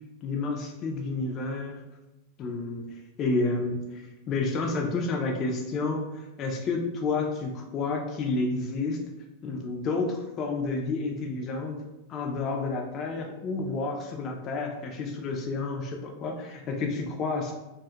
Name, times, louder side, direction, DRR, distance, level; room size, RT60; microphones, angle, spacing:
voice 1, 0.2-1.8 2.4-4.0 4.3-9.0 9.4-11.8 12.1-17.5, left 3 dB, 30° left, 1 dB, 0.3 m, -30 dB
2.3 x 2.0 x 2.7 m, 1.0 s
supercardioid pair, 150°, 0 cm